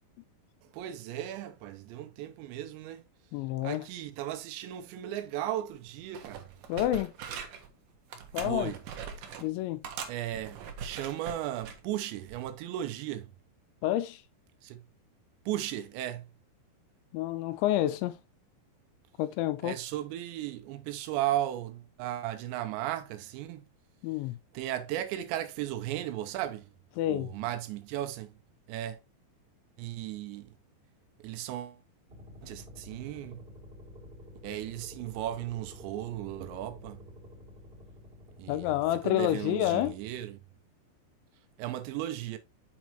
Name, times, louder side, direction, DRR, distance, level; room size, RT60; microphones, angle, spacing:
voice 1, 0.7-3.0 3.6-6.5 8.4-8.8 9.2-9.3 10.1-13.3 14.6-14.8 15.5-16.3 19.6-23.6 24.5-26.7 27.1-28.3 28.7-29.0 29.8-30.5 31.2-31.8 32.4-33.4 34.4-37.0 38.4-40.4 41.6-42.4, right 13 dB, 85° right, 2.9 m, -36 dB
voice 2, 3.3-3.9 6.7-7.1 8.3-8.7 9.4-9.9 13.8-14.2 17.1-18.2 19.2-19.8 24.0-24.4 27.0-27.3 38.5-40.0, left 14 dB, 80° left, 2.9 m, -29 dB
sound 1, 5.7-5.9 6.1-7.7 8.1-9.5 9.8-11.8 12.3-12.5, right 6 dB, 70° right, 2.1 m, -42 dB
sound 2, 32.1-38.9, left 1 dB, 20° right, 1.9 m, -50 dB
7.4 x 6.1 x 2.9 m
omnidirectional pair, 5.4 m